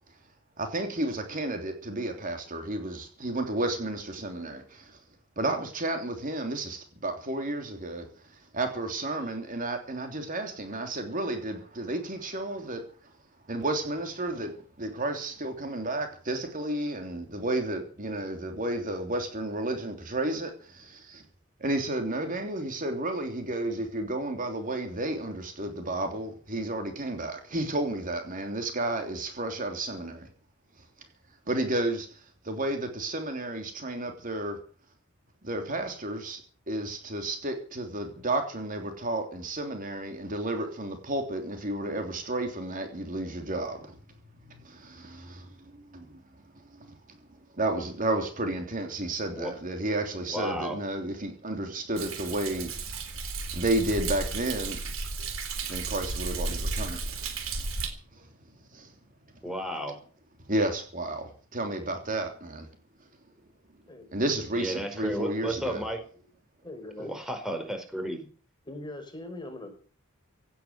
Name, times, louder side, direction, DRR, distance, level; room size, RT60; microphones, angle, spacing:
voice 1, 0.6-5.0 5.4-13.1 13.5-14.5 14.8-21.3 21.6-30.3 31.5-34.6 35.4-36.4 36.7-44.0 44.5-46.2 46.7-47.2 47.5-52.7 53.5-54.8 55.7-57.2 58.1-58.3 58.7-58.9 60.5-62.7 64.1-65.8, right 1 dB, 40° right, 3.2 m, -32 dB
voice 2, 50.3-50.8 59.4-60.0 64.5-66.0 67.0-68.2, equal, 5° right, 4.9 m, -33 dB
Thunder, 52.0-57.9, right 3 dB, 80° right, 3.8 m, -33 dB
voice 3, 66.6-67.1 68.6-69.7, left 1 dB, 25° left, 5.7 m, -41 dB
17.0 x 9.6 x 8.2 m
head